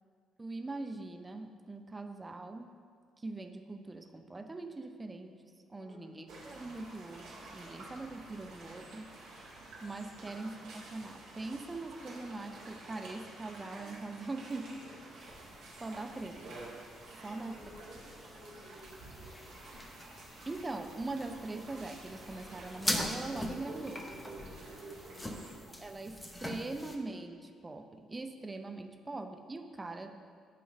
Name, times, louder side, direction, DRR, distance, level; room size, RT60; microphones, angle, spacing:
voice 1, 0.4-2.7 3.2-5.4 5.7-9.2 9.8-14.8 15.1-15.5 15.8-16.6 17.2-17.5 20.5-24.0 25.3-25.4 25.7-30.1, right 2 dB, 25° right, 6 dB, 0.6 m, -42 dB
voice 2, 5.8-6.4 10.1-10.5 17.2-20.0 24.9-25.9 30.0-30.2, equal, 85° right, -10 dB, 1.9 m, -56 dB
sound 1, 6.3-25.5, right 2 dB, 60° right, 1.3 m, -50 dB
sound 2, 15.2-27.0, left 1 dB, 15° left, 0.8 m, -43 dB
8.9 x 3.1 x 6.0 m, 2.1 s
figure-of-eight pair, 45°, 0 cm